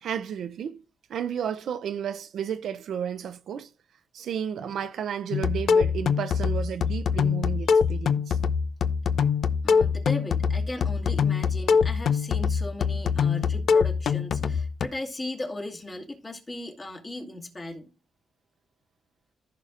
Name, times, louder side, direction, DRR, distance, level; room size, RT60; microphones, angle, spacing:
voice 1, 0.0-0.8 1.1-3.7 4.1-8.4 9.2-9.3, right 8 dB, 75° right, 0.5 m, -32 dB
sound 1, 5.3-14.9, left 6 dB, 70° left, 0.5 m, -24 dB
voice 2, 9.6-17.9, left 2 dB, 30° left, 2.0 m, -37 dB
15.0 x 5.1 x 2.5 m
cardioid pair, 100°, 0 cm